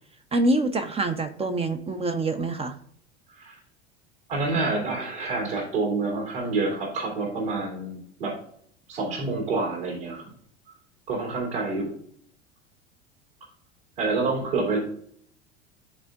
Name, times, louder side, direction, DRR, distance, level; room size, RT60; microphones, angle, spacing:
voice 1, 0.3-2.8, right 2 dB, 15° right, 8 dB, 0.7 m, -25 dB
voice 2, 4.3-8.4 8.9-10.3 11.1-11.9 14.0-14.8, right 3 dB, 55° right, 0 dB, 3.1 m, -27 dB
12.0 x 4.2 x 2.4 m, 0.62 s
figure-of-eight pair, 80°, 34 cm